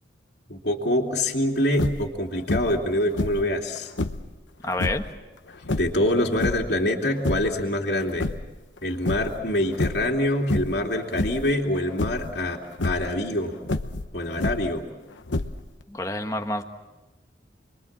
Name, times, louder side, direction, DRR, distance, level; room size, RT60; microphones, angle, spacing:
voice 1, 0.5-3.9 5.7-8.3 8.8-13.5 14.1-14.8, left 1 dB, 65° left, 1 dB, 2.7 m, -25 dB
sound 1, 1.7-2.1 2.5-2.9 3.1-4.3 4.7-5.1 5.6-6.8 7.1-7.6 8.0-8.8 9.1-9.4 9.7-10.1 10.5-10.8 11.1-11.5 12.0-12.3 12.7-13.1 13.6-14.8 15.3-15.8, left 2 dB, 85° left, 1.0 m, -28 dB
voice 2, 4.6-5.1 15.9-16.6, left 2 dB, 20° left, 5 dB, 1.4 m, -28 dB
29.5 x 22.5 x 7.3 m, 1.1 s
head